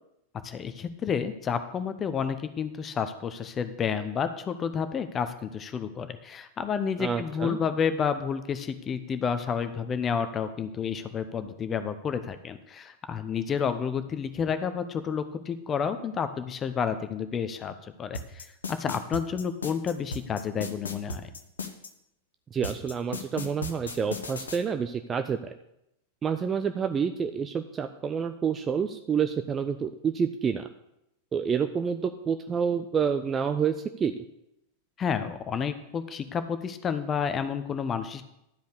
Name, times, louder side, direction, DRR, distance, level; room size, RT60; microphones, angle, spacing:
voice 1, 0.4-21.3 35.0-38.2, left 7 dB, 25° left, 10 dB, 0.8 m, -30 dB
voice 2, 7.0-7.6 22.5-25.4 26.2-30.7 31.3-34.1, right 6 dB, 20° right, 8 dB, 0.5 m, -28 dB
sound 1, 18.1-21.9 22.6-24.6, left 3 dB, 70° left, 1.0 m, -35 dB
12.0 x 5.3 x 6.7 m, 0.82 s
figure-of-eight pair, 90°, 0 cm